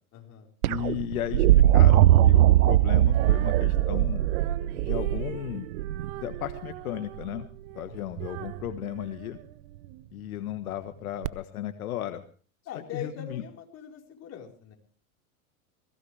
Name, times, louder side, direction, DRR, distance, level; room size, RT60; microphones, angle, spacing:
voice 1, 0.1-0.5 7.9-8.1 12.7-14.7, left 8 dB, 35° left, 1 dB, 4.5 m, -42 dB
sound 1, 0.6-6.6 8.2-8.7 11.2-11.3, right 13 dB, 80° right, 0.7 m, -21 dB
voice 2, 0.7-4.2 4.8-5.7 6.2-7.5 7.7-9.4 10.1-12.2 12.9-13.4, left 12 dB, 75° left, 8 dB, 1.5 m, -35 dB
Female singing, 3.0-10.1, right 15 dB, 50° right, 1.4 m, -44 dB
21.5 x 16.5 x 3.4 m, 0.41 s
hypercardioid pair, 120°, 43 cm